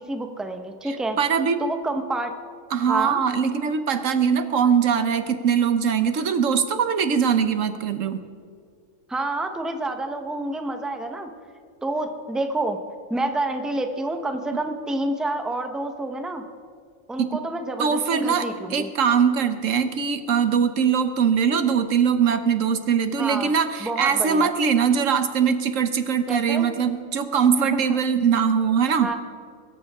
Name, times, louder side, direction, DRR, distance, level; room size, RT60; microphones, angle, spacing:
voice 1, 0.0-1.2 1.6-2.3 2.9-3.2 9.1-11.3 11.8-12.8 13.1-16.4 17.1-18.9 23.2-23.5 23.8-24.5 26.3-26.7 27.6-28.0 29.0-29.2, right 2 dB, ahead, 5 dB, 1.0 m, -28 dB
voice 2, 1.2-1.6 2.7-8.2 17.2-17.4 17.8-29.1, right 7 dB, 80° right, 9 dB, 1.3 m, -21 dB
23.5 x 14.0 x 3.7 m, 2.2 s
omnidirectional pair, 1.3 m